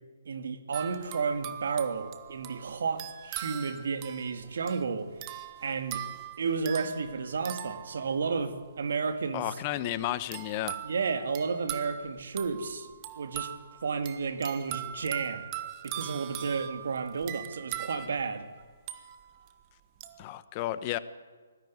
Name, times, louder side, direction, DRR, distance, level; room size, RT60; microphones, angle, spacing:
voice 1, 0.3-5.1 5.6-6.1 6.4-9.5 10.8-12.9 13.2-13.5 13.8-15.5 15.8-18.5, right 5 dB, 65° right, 8 dB, 2.2 m, -32 dB
sound 1, 0.7-8.6 10.3-19.5 20.0-20.2, right 12 dB, 30° right, 1.4 m, -41 dB
voice 2, 9.3-10.8 20.2-21.0, left 14 dB, 30° left, 14 dB, 1.0 m, -32 dB
19.5 x 14.0 x 9.5 m, 1.5 s
figure-of-eight pair, 140°, 0 cm